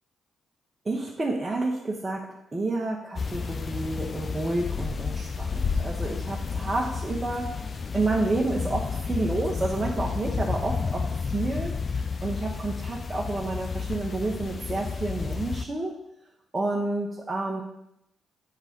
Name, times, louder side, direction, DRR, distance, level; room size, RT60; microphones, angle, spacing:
voice 1, 0.8-7.5 7.9-16.0 16.5-17.6, right 2 dB, 25° right, -3 dB, 1.2 m, -30 dB
sound 1, 3.2-15.7, left 5 dB, 45° left, 0.6 m, -31 dB
8.1 x 3.8 x 5.3 m, 0.80 s
supercardioid pair, 55°, 0 cm